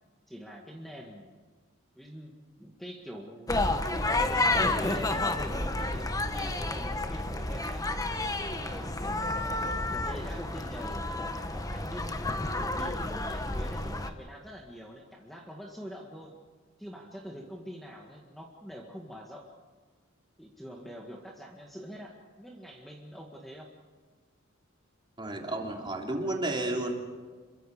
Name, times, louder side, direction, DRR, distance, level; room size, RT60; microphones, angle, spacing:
voice 1, 0.3-1.4 2.0-3.6 4.1-7.8 8.5-9.3 9.9-12.2 12.6-16.3 16.8-19.5 20.4-23.7, equal, ahead, -1 dB, 1.9 m, -44 dB
sound 1, 3.5-14.1, left 2 dB, 20° left, 1.2 m, -30 dB
voice 2, 25.2-27.0, right 2 dB, 25° right, 0 dB, 3.3 m, -32 dB
27.5 x 23.5 x 5.0 m, 1.4 s
head